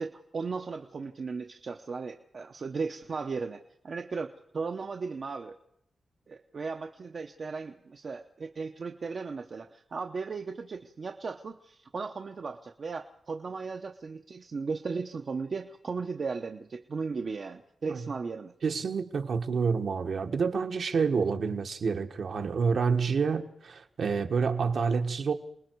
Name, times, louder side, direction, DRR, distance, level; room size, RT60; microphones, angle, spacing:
voice 1, 0.0-5.5 6.3-18.5, right 4 dB, 50° right, 0.9 m, -36 dB
voice 2, 18.6-25.3, right 5 dB, 65° right, 1.4 m, -28 dB
28.5 x 20.0 x 4.7 m
wide cardioid pair, 125°, 0 cm